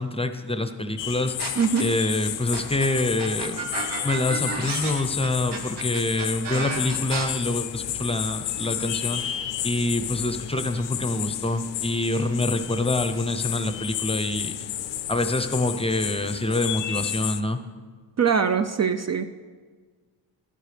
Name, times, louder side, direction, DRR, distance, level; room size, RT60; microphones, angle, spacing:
voice 1, 0.0-1.4 1.8-3.7 4.0-9.3 9.6-14.5 15.1-17.6, left 2 dB, 15° left, 8 dB, 0.6 m, -26 dB
sound 1, 1.0-17.4, left 12 dB, 90° left, 0.5 m, -32 dB
sound 2, 1.4-2.0 2.5-7.2, right 4 dB, 70° right, 1.4 m, -32 dB
voice 2, 1.6-2.0 18.2-19.2, right 6 dB, 40° right, 9 dB, 0.4 m, -22 dB
11.5 x 9.9 x 3.4 m, 1.5 s
cardioid pair, 60°, 43 cm